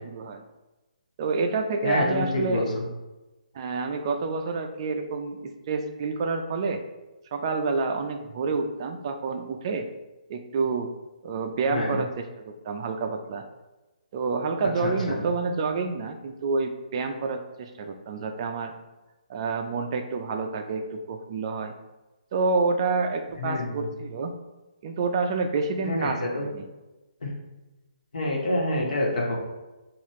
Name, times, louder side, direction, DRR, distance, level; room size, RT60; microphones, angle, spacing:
voice 1, 0.0-0.4 1.2-2.7 3.5-6.8 7.3-9.9 10.3-10.9 11.2-13.4 14.1-18.7 19.3-21.7 22.3-24.3 24.8-26.6, right 4 dB, 35° right, 6 dB, 0.3 m, -28 dB
voice 2, 1.8-2.8 11.7-12.0 14.8-15.2 23.4-23.9 25.8-26.5 27.2-27.3 28.1-29.4, left 1 dB, 65° left, -2 dB, 1.2 m, -27 dB
5.4 x 2.4 x 3.0 m, 1.1 s
figure-of-eight pair, 140°, 4 cm